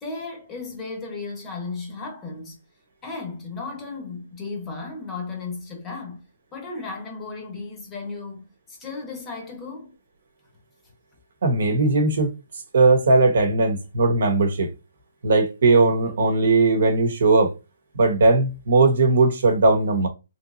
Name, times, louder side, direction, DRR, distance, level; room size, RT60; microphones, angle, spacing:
voice 1, 0.0-2.6 3.0-9.9, left 4 dB, 15° left, 0.8 m, -35 dB
voice 2, 11.4-12.3 12.7-14.7 15.2-17.5 17.9-20.1, right 3 dB, 65° right, 1.0 m, -18 dB
3.3 x 3.0 x 2.5 m
hypercardioid pair, 165°, 0 cm